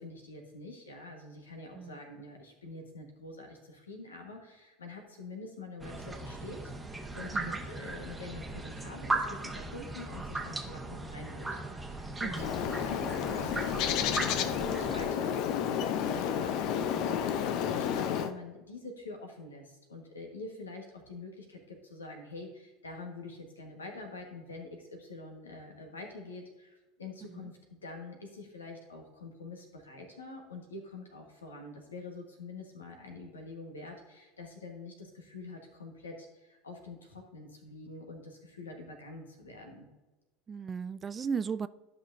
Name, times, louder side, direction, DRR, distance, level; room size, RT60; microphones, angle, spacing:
voice 1, 0.0-11.5 11.8-39.9, left 3 dB, 85° left, 1.5 m, -46 dB
sound 1, 5.8-15.1, right 2 dB, 10° right, 1.1 m, -37 dB
Bird, 12.3-18.3, left 8 dB, 55° left, 0.6 m, -31 dB
voice 2, 40.5-41.7, right 6 dB, 30° right, 0.3 m, -36 dB
12.5 x 5.8 x 2.7 m
figure-of-eight pair, 75°, 0 cm